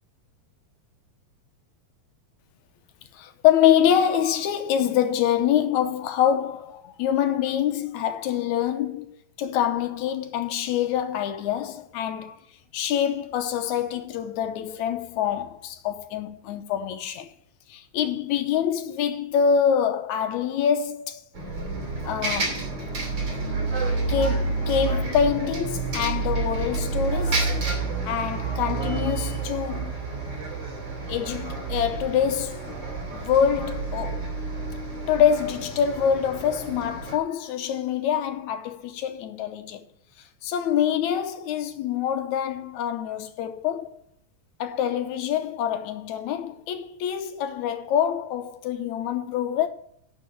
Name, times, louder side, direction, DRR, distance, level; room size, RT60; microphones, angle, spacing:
voice 1, 3.1-9.1 9.4-12.4 12.7-17.3 17.7-21.2 22.1-22.7 24.1-30.0 31.1-32.7 33.1-34.4 35.1-39.9 40.4-43.9 44.6-49.7, left 9 dB, 85° left, 2.3 m, -25 dB
Bus, 21.3-37.2, right 3 dB, 40° right, 3.4 m, -29 dB
11.5 x 5.4 x 7.5 m
omnidirectional pair, 3.3 m